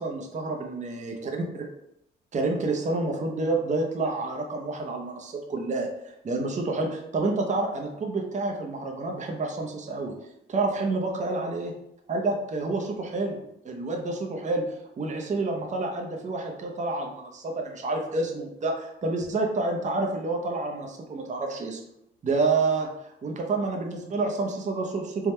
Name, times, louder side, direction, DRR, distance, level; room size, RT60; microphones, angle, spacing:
voice 1, 0.0-1.6 2.3-10.1 10.5-11.7 12.1-14.6 15.0-21.8 22.2-22.9 23.2-25.3, right 3 dB, 35° right, 2 dB, 0.7 m, -29 dB
3.5 x 2.3 x 4.2 m, 0.78 s
cardioid pair, 90°, 20 cm